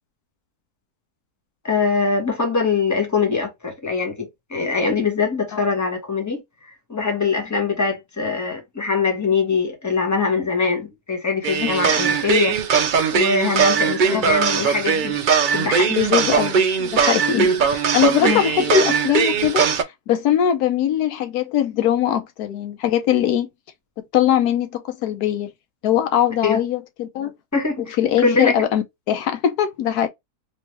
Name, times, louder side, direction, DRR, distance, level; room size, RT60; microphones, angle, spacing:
voice 1, 1.6-12.6 13.1-15.2 15.5-16.0 17.4-17.6 18.2-18.5 26.4-26.6 27.5-27.9 28.2-28.5, left 4 dB, 10° left, 1.2 m, -22 dB
sound 1, 11.4-19.8, right 6 dB, 70° right, 0.4 m, -20 dB
voice 2, 15.9-19.7 20.1-23.5 24.1-25.5 25.8-27.3 28.0-30.1, left 10 dB, 85° left, 1.2 m, -21 dB
3.3 x 3.0 x 2.9 m
omnidirectional pair, 1.6 m